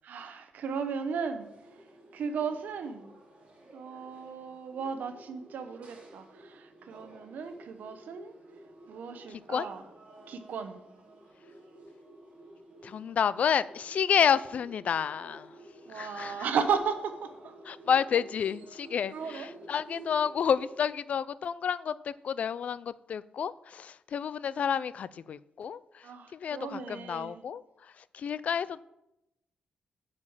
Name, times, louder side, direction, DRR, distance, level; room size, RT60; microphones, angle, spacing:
voice 1, 0.0-1.5 2.1-3.1 3.7-8.3 8.9-9.8 10.3-10.8 15.9-17.5 19.1-19.5 19.9-20.1 26.0-27.4, right 6 dB, 80° right, 8 dB, 1.0 m, -35 dB
sound 1, 1.4-20.8, right 1 dB, 45° right, 2.9 m, -53 dB
voice 2, 9.3-9.7 12.8-15.5 15.9-16.5 17.7-28.8, left 7 dB, 55° left, 18 dB, 0.3 m, -30 dB
8.3 x 5.1 x 7.1 m, 0.89 s
wide cardioid pair, 145°, 3 cm